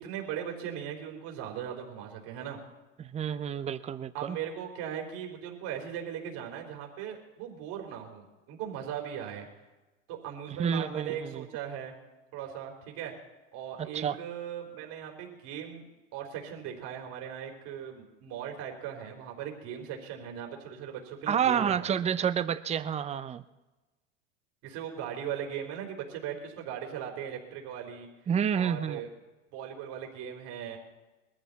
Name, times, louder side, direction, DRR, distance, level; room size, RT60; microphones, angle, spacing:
voice 1, 0.0-2.6 4.1-9.5 10.1-11.9 12.3-13.1 13.5-15.8 16.1-21.9 22.2-22.3 24.6-28.1 28.5-29.1 29.5-30.8, right 9 dB, 55° right, 2 dB, 4.0 m, -39 dB
voice 2, 3.0-4.4 10.6-11.4 13.9-14.1 21.3-23.4 28.3-29.0, right 8 dB, 15° right, 14 dB, 0.6 m, -29 dB
21.5 x 14.0 x 4.1 m, 1.1 s
hypercardioid pair, 95°, 38 cm